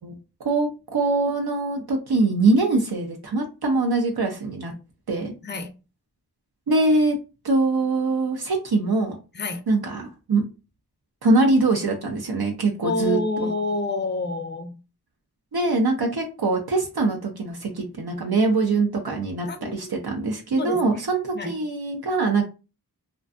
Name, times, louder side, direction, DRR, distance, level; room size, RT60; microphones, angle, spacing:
voice 1, 0.4-4.7 5.1-5.3 6.7-7.2 7.4-9.2 9.7-10.4 11.2-13.5 15.5-22.4, right 3 dB, 70° right, 0.6 m, -23 dB
voice 2, 12.8-14.8 19.5-19.9 20.6-20.8 21.3-21.5, left 3 dB, 30° left, 0.4 m, -27 dB
2.5 x 2.2 x 2.4 m
wide cardioid pair, 40°, 39 cm